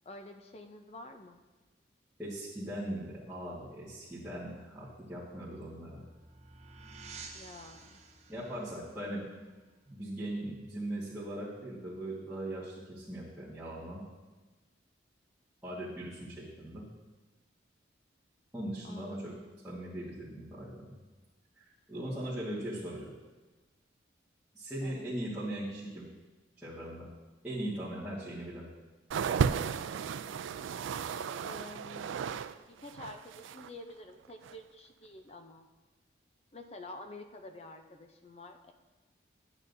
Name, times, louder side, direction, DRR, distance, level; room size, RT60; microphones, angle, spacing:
voice 1, 0.0-1.4 7.3-8.0 18.8-19.4 24.8-25.1 31.4-32.1 32.7-35.7 36.5-38.7, left 2 dB, 35° left, 6 dB, 0.6 m, -48 dB
voice 2, 2.2-6.0 8.3-9.2 9.9-14.0 15.6-16.8 18.5-19.3 19.6-21.0 21.5-23.1 24.5-26.0 26.6-27.1 27.4-28.7, right 1 dB, 5° right, -14 dB, 1.6 m, -39 dB
sound 1, 5.3-10.5, right 4 dB, 35° right, 0.7 m, -52 dB
sound 2, 29.1-32.5 32.8-33.7 34.4-34.5, right 7 dB, 90° right, 0.3 m, -34 dB
10.5 x 8.7 x 2.7 m, 1.2 s
head